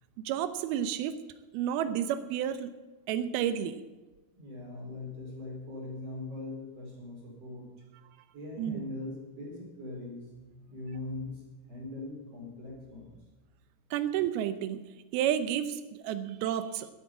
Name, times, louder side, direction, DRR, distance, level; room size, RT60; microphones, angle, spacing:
voice 1, 0.3-1.2 1.5-2.7 3.1-3.8 8.6-8.8 13.9-14.8 15.1-16.9, right 10 dB, 75° right, 12 dB, 2.6 m, -31 dB
voice 2, 4.4-7.7 8.3-13.1, left 2 dB, 40° right, -3 dB, 5.3 m, -41 dB
13.5 x 8.5 x 8.3 m, 1.2 s
omnidirectional pair, 4.8 m